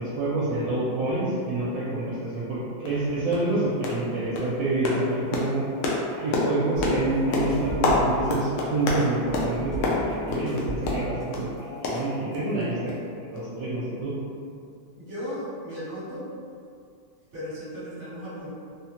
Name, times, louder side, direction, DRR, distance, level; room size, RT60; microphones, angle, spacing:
voice 1, 0.0-5.7 6.2-14.1, right 2 dB, 75° right, -8 dB, 1.2 m, -28 dB
sound 1, 2.3-2.4 2.9-3.0 3.3-3.5 3.8-4.1 4.4-11.5 11.8-12.6 12.9-13.0 13.4-13.5, left 2 dB, 85° left, 1.3 m, -28 dB
sound 2, 6.8-8.3 9.0-11.3 11.6-12.5, right 2 dB, 60° left, 1.1 m, -37 dB
voice 2, 15.0-16.3 17.3-18.5, equal, 40° right, -11 dB, 1.4 m, -36 dB
3.8 x 2.1 x 2.8 m, 2.4 s
omnidirectional pair, 2.1 m